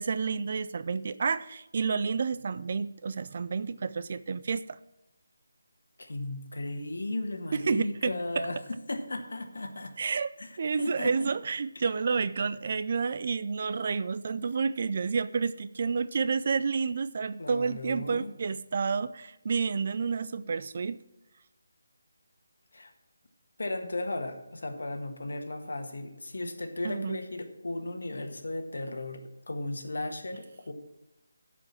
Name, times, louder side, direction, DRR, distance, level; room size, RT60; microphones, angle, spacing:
voice 1, 0.0-4.8 7.7-8.5 10.0-10.3 10.6-21.0 26.8-27.2, right 5 dB, 35° right, 15 dB, 0.3 m, -30 dB
voice 2, 6.0-8.6 8.9-9.9 10.4-10.5 10.8-11.3 11.7-11.8 17.4-18.4 22.7-22.9 23.6-30.7, left 2 dB, 75° left, 6 dB, 1.5 m, -35 dB
11.5 x 5.0 x 7.4 m, 0.92 s
figure-of-eight pair, 175°, 0 cm